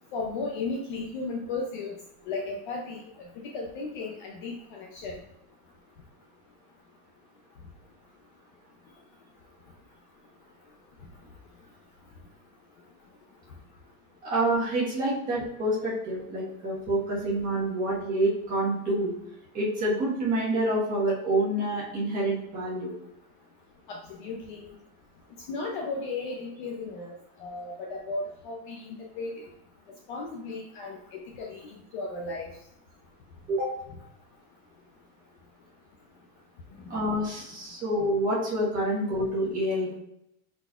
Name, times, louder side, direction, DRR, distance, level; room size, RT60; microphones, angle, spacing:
voice 1, 0.1-1.9 2.3-3.0 3.5-5.2 23.9-24.7 25.5-27.1 27.4-28.9 29.2-29.3 30.1-32.5 36.9-37.2, left 3 dB, 40° left, 0 dB, 0.5 m, -35 dB
voice 2, 14.2-19.1 19.5-22.9 33.5-33.7 36.9-40.0, right 1 dB, 20° right, -6 dB, 1.3 m, -27 dB
5.2 x 4.1 x 2.3 m, 0.80 s
supercardioid pair, 170°, 43 cm